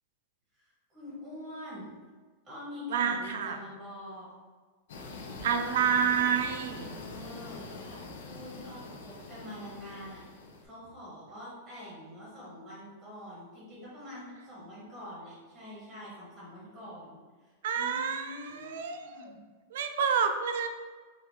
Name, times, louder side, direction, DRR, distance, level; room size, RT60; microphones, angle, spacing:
voice 1, 0.5-1.9 2.4-4.3 6.8-8.0 8.3-10.2 10.6-19.4, left 1 dB, 10° right, -6 dB, 1.1 m, -45 dB
voice 2, 2.9-3.6 5.4-6.9 17.6-19.3 19.7-20.7, right 7 dB, 60° right, 7 dB, 0.4 m, -29 dB
sound 1, 4.9-10.6, left 3 dB, 65° left, 0.7 m, -44 dB
4.1 x 2.5 x 4.5 m, 1.4 s
supercardioid pair, 180°, 0 cm